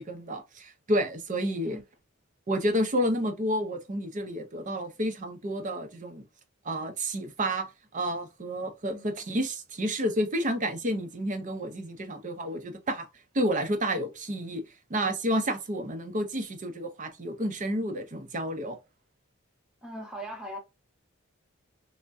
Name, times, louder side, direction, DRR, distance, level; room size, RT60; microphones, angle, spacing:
voice 1, 0.0-1.8 2.5-6.2 6.7-7.7 7.9-13.1 13.3-14.6 14.9-18.8, equal, 35° right, 0.6 m, -30 dB
voice 2, 8.9-9.3 19.8-20.6, equal, 5° right, 0.8 m, -40 dB
3.4 x 2.1 x 2.5 m
head